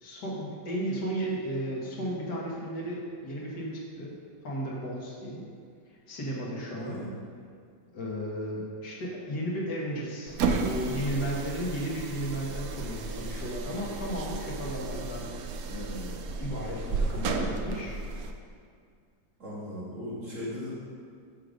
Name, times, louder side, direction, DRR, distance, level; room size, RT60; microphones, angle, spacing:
voice 1, 0.0-4.1 4.4-5.4 6.1-7.0 7.9-15.3 15.6-18.0, equal, 75° left, -4 dB, 2.0 m, -34 dB
voice 2, 6.7-7.2 19.4-20.7, left 1 dB, 50° right, -8 dB, 2.3 m, -37 dB
sound 1, 10.3-18.4, right 3 dB, 70° right, 1.0 m, -33 dB
6.7 x 6.4 x 5.0 m, 2.2 s
omnidirectional pair, 1.8 m